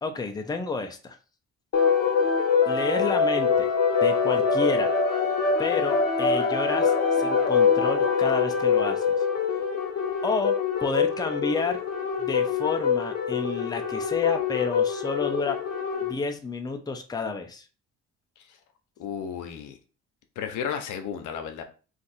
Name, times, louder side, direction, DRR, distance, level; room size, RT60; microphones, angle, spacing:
voice 1, 0.0-1.2 2.6-3.7 4.0-4.9 5.6-9.0 10.2-10.5 10.8-11.8 12.2-15.6 16.0-17.6, left 4 dB, 15° left, 0.5 m, -30 dB
sound 1, 1.7-16.1, left 5 dB, 55° left, 0.8 m, -24 dB
voice 2, 19.0-19.8 20.4-21.6, left 7 dB, 85° left, 0.7 m, -33 dB
2.6 x 2.5 x 4.0 m
cardioid pair, 90°, 30 cm